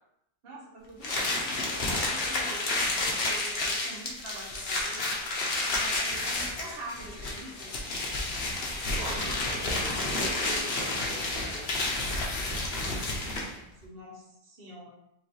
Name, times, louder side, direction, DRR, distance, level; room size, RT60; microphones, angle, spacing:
voice 1, 0.4-7.7 13.2-13.5 13.8-14.9, right 1 dB, 40° right, -3 dB, 1.1 m, -45 dB
sound 1, 1.0-13.6, left 2 dB, 45° left, 0.8 m, -30 dB
voice 2, 8.9-12.6, right 2 dB, 70° right, -2 dB, 1.2 m, -44 dB
4.7 x 3.1 x 3.0 m, 0.79 s
omnidirectional pair, 1.9 m